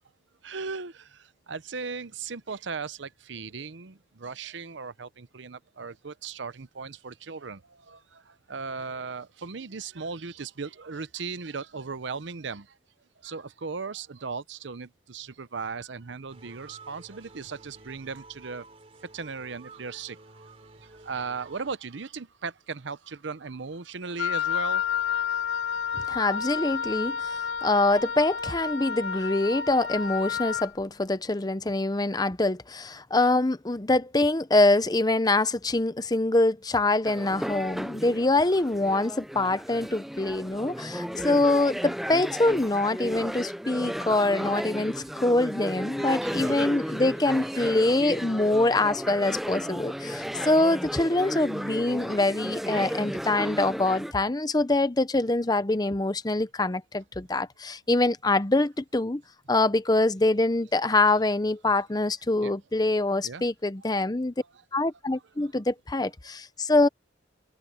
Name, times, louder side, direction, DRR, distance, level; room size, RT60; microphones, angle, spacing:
voice 1, 0.4-12.8 13.2-18.7 19.0-24.8 46.0-46.9 47.3-47.8 50.2-50.3 60.8-61.0 62.4-62.5 63.2-63.4 65.4-65.5, right 5 dB, 70° right, 0.8 m, -37 dB
sound 1, 16.3-21.8, right 3 dB, 35° right, 3.8 m, -51 dB
Wind instrument woodwind instrument, 24.2-30.7, left 7 dB, 75° left, 2.2 m, -30 dB
voice 2, 25.9-59.2 59.5-64.3 64.7-66.9, left 2 dB, 20° left, 0.7 m, -24 dB
sound 2, 37.0-54.1, equal, ahead, 0.4 m, -34 dB
head